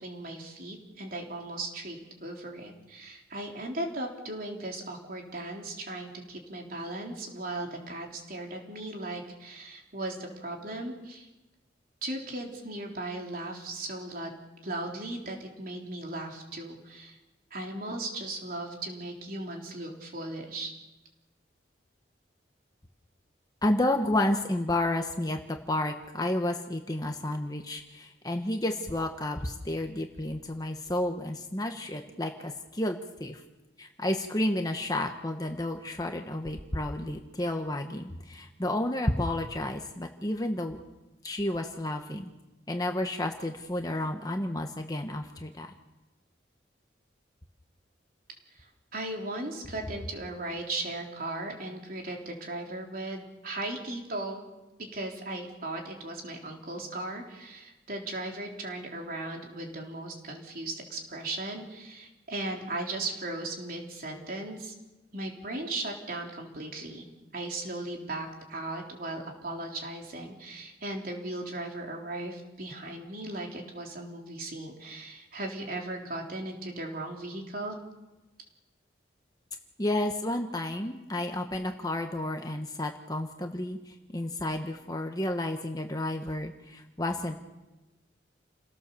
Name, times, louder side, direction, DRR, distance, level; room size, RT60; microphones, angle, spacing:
voice 1, 0.0-11.3 12.0-17.2 17.5-20.7 48.5-54.4 54.9-64.7 65.1-67.0 67.3-77.8, right 2 dB, 50° right, 1 dB, 3.8 m, -37 dB
voice 2, 23.6-33.4 33.8-40.8 41.2-42.3 42.7-45.7 79.8-87.4, left 1 dB, 20° left, 4 dB, 1.2 m, -31 dB
29.5 x 17.5 x 7.1 m, 1.1 s
head